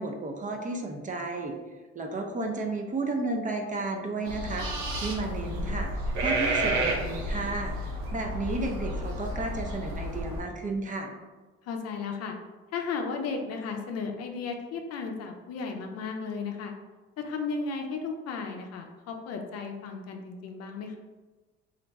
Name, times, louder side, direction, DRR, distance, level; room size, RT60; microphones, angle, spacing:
voice 1, 0.0-1.5 1.9-4.7 5.0-5.9 6.2-7.8 8.1-11.1, right 2 dB, 25° right, 2 dB, 0.5 m, -32 dB
sound 1, 4.2-10.4, right 1 dB, 85° right, 0.6 m, -31 dB
voice 2, 11.7-12.4 12.7-16.7 17.2-21.0, left 4 dB, 60° left, 4 dB, 0.5 m, -34 dB
2.5 x 2.2 x 4.0 m, 1.3 s
supercardioid pair, 65°, 29 cm